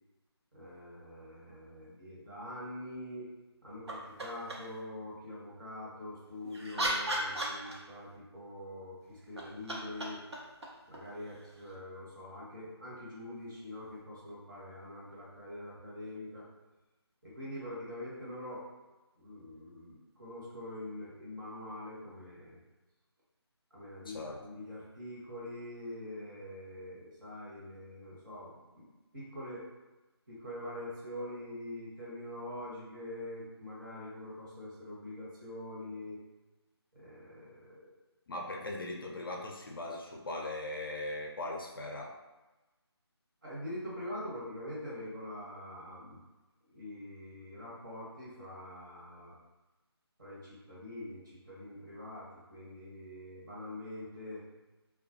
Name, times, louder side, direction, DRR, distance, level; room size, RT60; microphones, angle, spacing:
voice 1, 0.5-3.3 3.6-10.2 10.9-16.5 17.2-18.7 19.2-22.6 23.7-29.7 30.3-36.2 36.9-37.9 43.4-46.2 46.7-49.3 50.2-54.4, left 1 dB, 45° right, -6 dB, 0.9 m, -44 dB
sound 1, 3.9-4.8 6.2-8.1 9.2-11.8 13.8-13.9, right 1 dB, 75° right, 0.6 m, -37 dB
voice 2, 24.1-24.4 38.3-42.2, left 2 dB, 55° left, -1 dB, 0.4 m, -39 dB
2.2 x 2.2 x 2.5 m, 1.1 s
figure-of-eight pair, 160°, 14 cm